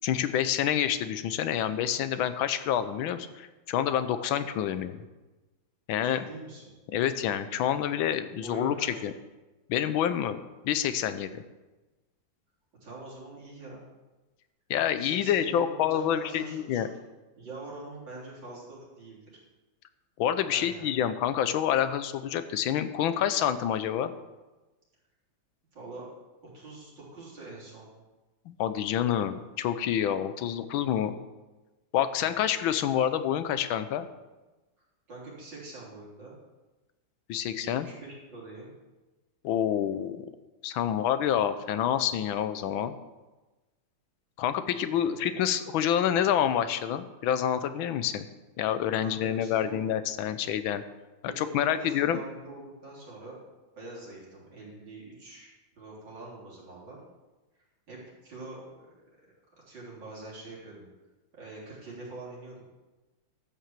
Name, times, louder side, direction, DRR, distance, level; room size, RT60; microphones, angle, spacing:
voice 1, 0.0-5.0 5.9-6.3 6.9-9.1 9.7-10.4 10.6-11.4 14.7-16.9 20.2-24.2 28.5-31.2 31.9-34.1 37.3-37.9 39.4-40.3 40.6-42.9 44.4-48.3 48.6-50.8 51.2-52.2, left 10 dB, 85° left, 11 dB, 1.5 m, -28 dB
voice 2, 6.0-6.7 7.8-7.9 8.4-8.9 12.8-13.8 15.0-16.9 17.3-19.2 20.4-20.9 25.7-26.1 26.5-27.9 32.2-32.3 35.1-36.4 37.6-38.7 44.7-45.1 49.0-49.8 51.3-53.4 53.8-55.5 55.8-57.0 57.9-58.9 59.7-60.9 61.3-62.6, right 2 dB, 65° right, -6 dB, 4.3 m, -44 dB
13.0 x 5.8 x 7.4 m, 1.1 s
omnidirectional pair, 2.1 m